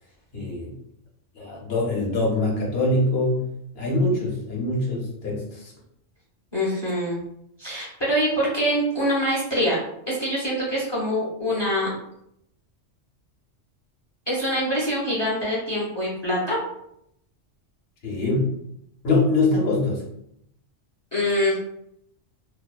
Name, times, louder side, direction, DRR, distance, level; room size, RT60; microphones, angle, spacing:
voice 1, 0.3-0.7 1.3-3.4 3.7-5.7 18.0-18.5 19.0-20.0, left 2 dB, 55° left, -3 dB, 1.0 m, -23 dB
voice 2, 6.5-7.2 7.6-9.8 10.1-11.9 14.3-16.6 21.1-21.6, equal, 25° left, -6 dB, 0.6 m, -24 dB
2.7 x 2.1 x 2.3 m, 0.75 s
omnidirectional pair, 1.3 m